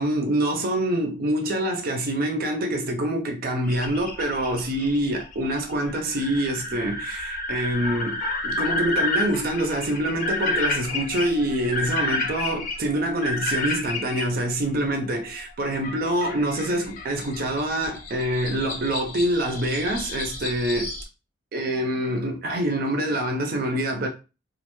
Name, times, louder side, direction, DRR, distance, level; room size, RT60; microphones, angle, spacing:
voice 1, 0.0-20.9 21.5-24.1, right 1 dB, 45° right, 0.4 m, -26 dB
sound 1, 3.6-14.2 15.8-21.0, left 2 dB, 40° left, 0.5 m, -30 dB
2.3 x 2.1 x 3.0 m
head